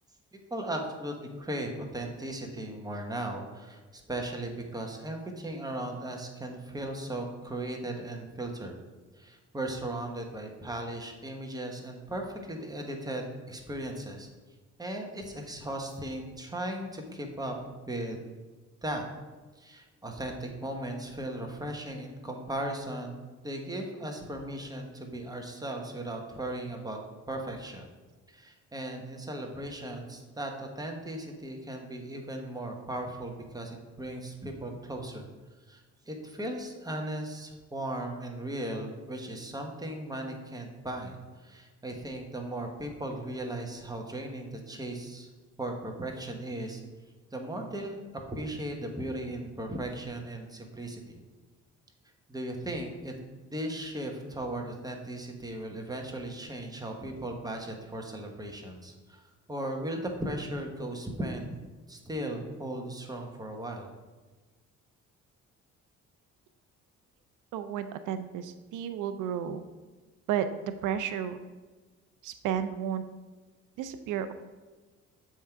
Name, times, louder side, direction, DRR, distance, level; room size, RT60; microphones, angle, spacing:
voice 1, 0.3-8.8 9.2-14.3 14.8-17.5 17.9-18.2 18.8-19.0 19.6-27.0 27.3-27.9 28.3-35.3 35.7-45.3 45.6-46.8 47.3-51.2 52.3-53.1 53.5-59.2 59.5-61.5 61.9-63.9, right 1 dB, 15° right, 2 dB, 1.1 m, -37 dB
voice 2, 67.5-69.6 70.3-70.5 70.8-71.4 72.2-73.0 73.8-74.3, right 9 dB, 90° right, 10 dB, 0.5 m, -32 dB
7.4 x 3.7 x 4.5 m, 1.3 s
cardioid pair, 90°, 30 cm